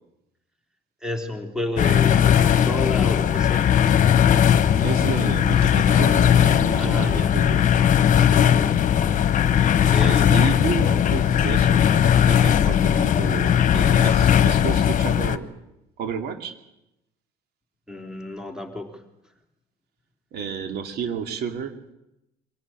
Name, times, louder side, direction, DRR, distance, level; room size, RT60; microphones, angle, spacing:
voice 1, 1.0-3.7 6.8-7.3 9.9-10.3 12.4-12.7 17.9-19.0, left 1 dB, 5° right, 4 dB, 3.4 m, -31 dB
sound 1, 1.8-15.4, left 9 dB, 50° left, 1.3 m, -18 dB
voice 2, 4.8-7.7 10.0-11.8 12.3-15.5 16.0-16.5 20.3-21.8, right 7 dB, 70° right, 6 dB, 2.6 m, -31 dB
24.5 x 17.0 x 9.0 m, 0.90 s
cardioid pair, 110°, 17 cm